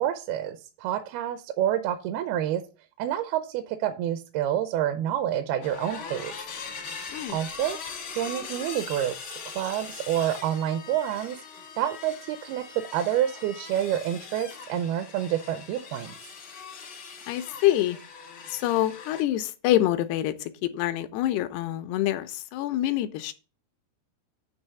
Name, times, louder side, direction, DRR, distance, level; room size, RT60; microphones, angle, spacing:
voice 1, 0.0-2.6 3.0-6.3 7.3-7.8 8.1-11.4 11.8-16.1, right 11 dB, 80° right, 2.5 m, -28 dB
sound 1, 5.6-19.2, left 6 dB, 65° left, 1.2 m, -41 dB
voice 2, 17.3-18.0 18.5-23.3, left 13 dB, 85° left, 2.7 m, -26 dB
9.1 x 3.4 x 6.7 m
omnidirectional pair, 4.7 m